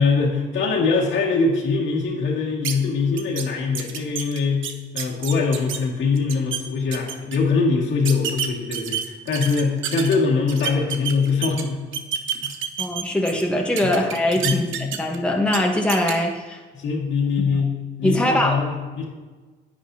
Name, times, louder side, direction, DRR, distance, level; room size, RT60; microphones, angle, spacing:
voice 1, 0.0-4.6 4.9-11.8 12.4-12.5 14.4-14.9 16.7-17.7 18.0-19.0, left 4 dB, 70° left, -3 dB, 2.1 m, -22 dB
sound 1, 2.6-2.7 3.2-3.4 3.7-5.8 6.2-6.6 6.9-7.4 8.0-10.1 10.5-11.6 11.9-13.4 13.8-15.2 15.5-15.6 15.9-16.1, right 8 dB, 75° right, 0.8 m, -28 dB
voice 2, 12.8-16.6 18.0-18.6, left 1 dB, 5° left, 0 dB, 1.1 m, -22 dB
10.0 x 8.7 x 2.8 m, 1.3 s
cardioid pair, 90°, 20 cm